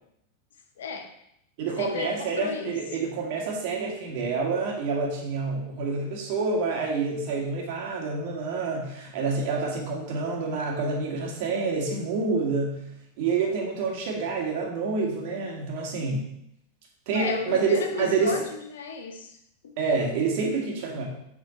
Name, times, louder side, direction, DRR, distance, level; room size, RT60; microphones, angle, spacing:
voice 1, 0.8-1.1 1.8-2.7 17.1-19.4 19.6-19.7, left 5 dB, 75° left, 4 dB, 0.8 m, -34 dB
voice 2, 1.6-12.8 13.2-16.3 17.1-18.4 19.8-21.0, right 4 dB, 60° right, -1 dB, 1.9 m, -27 dB
6.9 x 4.2 x 4.2 m, 0.78 s
hypercardioid pair, 100°, 0 cm